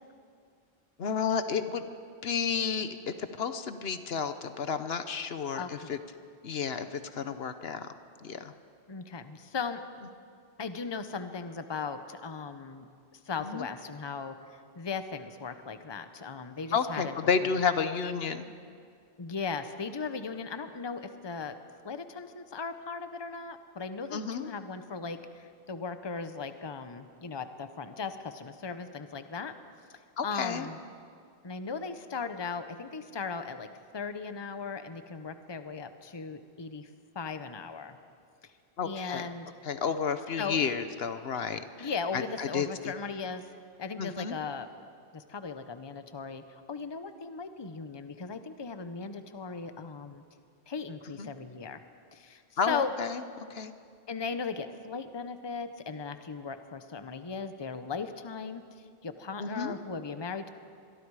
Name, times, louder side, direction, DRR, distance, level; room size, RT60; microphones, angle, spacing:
voice 1, 1.0-1.8 2.2-6.0 6.4-7.9 8.2-8.5 13.4-13.7 16.7-18.5 24.1-24.5 30.2-30.7 38.8-39.2 39.6-42.9 44.0-44.4 51.2-51.3 52.6-53.2 53.5-53.7 59.4-59.7, left 6 dB, 70° left, 10 dB, 1.1 m, -31 dB
voice 2, 5.5-5.9 8.9-9.8 10.6-14.3 14.8-17.3 19.2-21.6 21.8-29.5 30.2-30.8 31.4-36.9 37.1-38.0 38.4-38.5 38.8-39.5 40.4-40.6 41.8-43.4 43.8-44.7 45.1-50.2 50.7-51.8 52.1-52.9 54.1-60.5, left 5 dB, 25° left, 9 dB, 0.9 m, -37 dB
25.5 x 22.0 x 4.9 m, 2.2 s
omnidirectional pair, 1.1 m